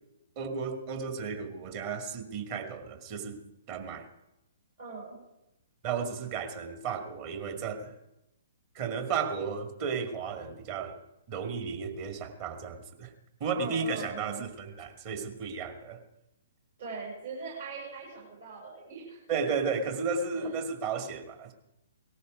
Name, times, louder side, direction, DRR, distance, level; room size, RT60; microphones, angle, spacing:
voice 1, 0.4-3.4 3.7-4.1 5.8-7.9 8.7-11.0 11.3-13.1 13.4-16.0 19.3-21.5, right 5 dB, 35° right, 6 dB, 2.0 m, -34 dB
voice 2, 4.8-5.2 13.5-14.4 16.8-19.2 20.3-20.5, right 4 dB, 60° right, -4 dB, 6.5 m, -41 dB
18.5 x 14.0 x 5.1 m, 0.90 s
figure-of-eight pair, 120°, 0 cm